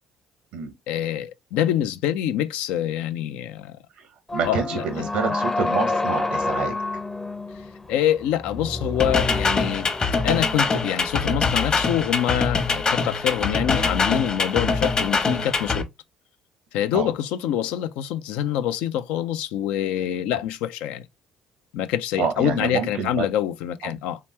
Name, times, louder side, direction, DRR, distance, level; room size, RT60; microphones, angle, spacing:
voice 1, 0.9-3.8 4.4-5.3 7.9-9.9 10.2-15.9 16.7-21.1 21.7-24.2, left 11 dB, 70° left, 0.4 m, -26 dB
voice 2, 3.9-6.8 16.9-17.1 22.2-23.3 23.8-23.9, right 6 dB, 70° right, 0.7 m, -27 dB
sound 1, 4.3-10.3, left 2 dB, 15° left, 0.6 m, -28 dB
sound 2, 9.0-15.8, left 4 dB, 35° left, 1.0 m, -23 dB
3.4 x 2.9 x 3.2 m
hypercardioid pair, 55°, 2 cm